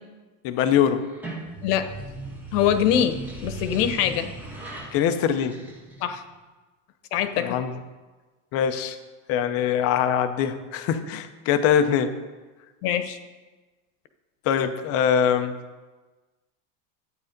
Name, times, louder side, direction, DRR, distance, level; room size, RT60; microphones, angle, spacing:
voice 1, 0.4-1.0 4.9-5.6 7.4-7.8 8.5-9.0 9.3-12.1 14.4-15.6, left 8 dB, 30° left, 9 dB, 0.6 m, -23 dB
sound 1, 1.0-6.3, right 2 dB, 5° right, 0.7 m, -38 dB
voice 2, 2.5-3.1 3.4-4.3 6.0-6.2 7.1-7.6 12.8-13.2, left 9 dB, 70° left, 9 dB, 1.2 m, -23 dB
12.0 x 8.9 x 5.1 m, 1.3 s
supercardioid pair, 175°, 49 cm